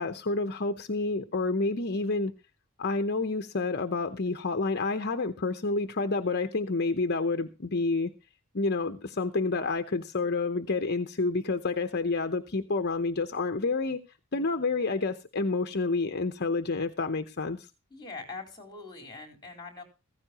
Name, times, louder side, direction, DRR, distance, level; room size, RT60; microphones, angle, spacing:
voice 1, 0.0-2.3 2.8-8.1 8.5-14.0 14.3-17.7, left 3 dB, 50° left, 8 dB, 0.9 m, -29 dB
voice 2, 17.9-19.8, left 3 dB, 20° left, 3 dB, 4.2 m, -42 dB
15.5 x 15.0 x 3.0 m, 0.30 s
head